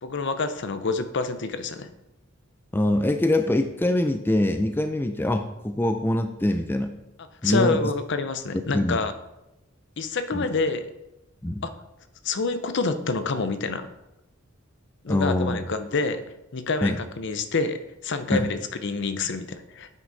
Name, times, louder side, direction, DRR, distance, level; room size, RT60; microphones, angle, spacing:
voice 1, 0.0-1.9 7.4-9.1 10.0-10.9 11.6-11.7 12.2-13.9 15.0-16.2 16.5-19.9, left 3 dB, 60° left, 10 dB, 0.7 m, -27 dB
voice 2, 2.7-6.9 7.4-7.8 8.7-9.0 10.3-10.4 11.4-11.7 15.1-15.6 16.8-17.0 18.3-18.5, left 1 dB, 10° left, 7 dB, 0.4 m, -24 dB
9.2 x 6.2 x 4.1 m, 0.90 s
head